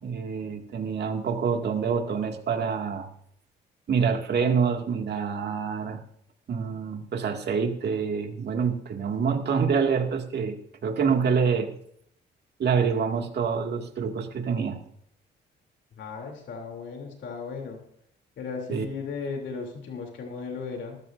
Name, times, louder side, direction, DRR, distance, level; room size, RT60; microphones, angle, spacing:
voice 1, 0.0-3.1 3.9-6.0 6.5-11.7 12.6-14.8 18.7-18.9, right 6 dB, 55° right, 3 dB, 2.3 m, -26 dB
voice 2, 16.0-17.8 18.4-21.0, left 5 dB, 70° left, 1 dB, 3.2 m, -36 dB
19.5 x 14.0 x 2.7 m, 0.69 s
cardioid pair, 90°, 20 cm